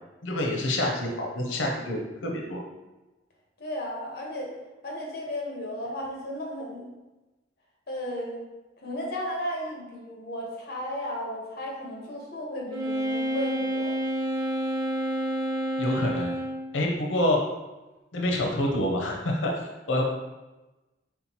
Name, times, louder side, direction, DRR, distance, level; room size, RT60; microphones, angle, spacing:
voice 1, 0.2-2.6 15.8-16.3 16.7-17.4 18.1-20.0, left 1 dB, 90° left, 0 dB, 0.6 m, -27 dB
voice 2, 3.6-4.5 4.8-6.9 7.9-8.4 8.8-13.9, equal, 55° left, -2 dB, 1.1 m, -34 dB
Wind instrument woodwind instrument, 12.7-16.7, right 1 dB, 65° right, 1.4 m, -29 dB
4.4 x 3.7 x 2.8 m, 1.1 s
head